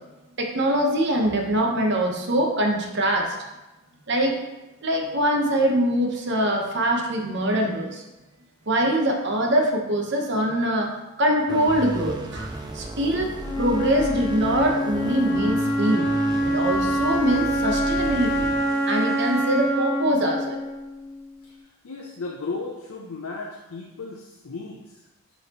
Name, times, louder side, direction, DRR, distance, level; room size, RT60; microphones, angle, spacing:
voice 1, 0.4-3.4 4.1-4.3 4.8-8.0 8.7-10.9 11.2-16.1 16.4-18.5 18.9-20.6, right 1 dB, 50° right, 1 dB, 0.9 m, -23 dB
sound 1, 11.5-19.2, right 2 dB, 20° right, 0.4 m, -35 dB
Wind instrument woodwind instrument, 13.4-21.4, equal, 15° left, 1.0 m, -25 dB
voice 2, 21.8-25.0, left 3 dB, 80° left, 0 dB, 0.6 m, -35 dB
8.0 x 4.0 x 2.9 m, 1.0 s
head